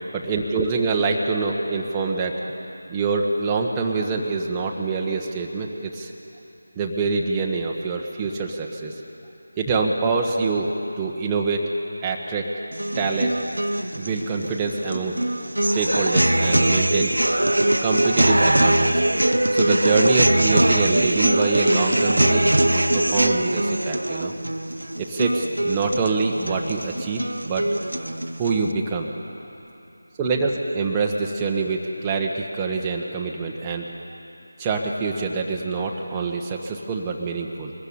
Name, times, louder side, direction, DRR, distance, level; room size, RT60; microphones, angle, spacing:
voice 1, 0.1-2.3 2.9-6.1 6.8-8.9 9.6-10.7 11.0-11.7 12.0-12.5 13.0-13.3 14.0-15.2 15.7-17.2 17.8-19.0 19.5-24.3 25.0-27.7 28.4-29.1 30.2-33.9 34.6-37.7, right 4 dB, 15° right, -1 dB, 1.3 m, -25 dB
sound 1, 12.7-28.7, right 1 dB, 80° right, 0.8 m, -22 dB
22.0 x 15.5 x 9.6 m, 3.0 s
figure-of-eight pair, 165°, 0 cm